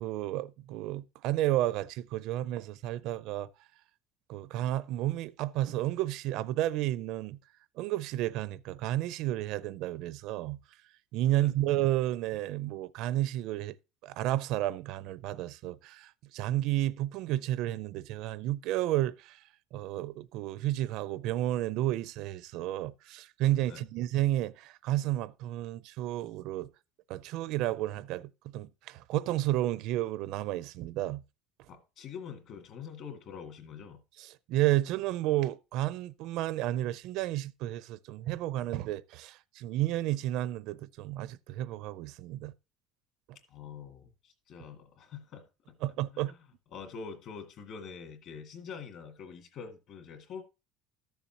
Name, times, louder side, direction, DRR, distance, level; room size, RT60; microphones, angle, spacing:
voice 1, 0.0-3.5 4.3-7.4 7.8-10.6 11.1-13.8 14.0-19.4 19.7-26.7 27.1-31.2 34.2-42.5 45.8-46.3, right 14 dB, 50° right, 0.4 m, -32 dB
voice 2, 31.7-34.0 43.5-45.8 46.1-46.4 46.7-50.4, left 6 dB, 40° left, 2.0 m, -45 dB
13.5 x 7.0 x 2.8 m
cardioid pair, 175°, 0 cm